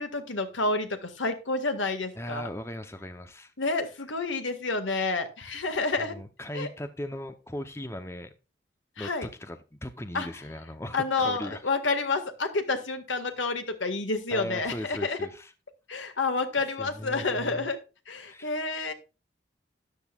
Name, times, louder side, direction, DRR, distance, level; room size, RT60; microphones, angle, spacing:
voice 1, 0.0-2.5 3.6-6.2 6.5-6.7 9.0-9.3 10.1-10.3 10.9-15.2 15.9-17.8 18.1-18.9, left 3 dB, 85° left, 7 dB, 1.8 m, -29 dB
voice 2, 2.2-3.5 6.0-8.3 9.0-11.6 14.3-15.5 16.1-16.2 16.8-17.7 18.2-18.5, left 1 dB, 15° left, 9 dB, 0.7 m, -38 dB
13.0 x 10.5 x 2.4 m, 0.30 s
head